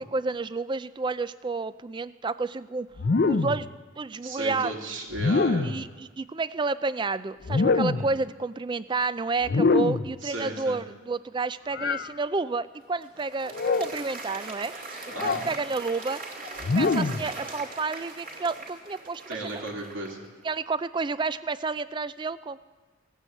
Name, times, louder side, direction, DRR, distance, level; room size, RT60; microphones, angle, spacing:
voice 1, 0.0-2.9 3.3-3.7 4.0-4.9 5.6-14.7 15.2-16.4 16.8-19.6 20.4-22.6, right 4 dB, 25° right, 15 dB, 0.3 m, -30 dB
sound 1, 3.0-3.7 5.1-5.9 7.4-8.2 9.4-10.2 11.7-12.1 13.5-14.0 15.1-15.5 16.6-17.3, left 3 dB, 50° left, 0.5 m, -24 dB
voice 2, 4.2-5.7 7.9-8.1 10.2-10.8 15.1-15.4 19.3-20.2, right 2 dB, 75° right, -2 dB, 2.8 m, -35 dB
Applause, 12.6-20.3, right 2 dB, 40° right, 2.6 m, -41 dB
17.0 x 9.0 x 7.8 m, 1.3 s
head